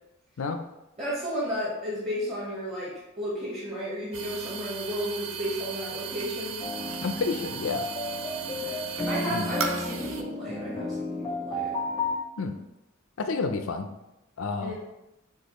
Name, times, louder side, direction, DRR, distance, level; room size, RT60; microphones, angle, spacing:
voice 1, 1.0-6.6 8.4-11.8 14.6-14.7, equal, 30° right, -8 dB, 1.2 m, -33 dB
sound 1, 4.1-10.2, right 7 dB, 65° right, 0.5 m, -36 dB
sound 2, 6.6-12.2, left 2 dB, 20° left, 0.5 m, -33 dB
voice 2, 7.0-7.9 9.3-9.5 12.4-12.6 13.2-13.9 14.4-14.7, left 4 dB, 75° left, 7 dB, 0.5 m, -30 dB
6.4 x 2.4 x 3.0 m, 0.93 s
head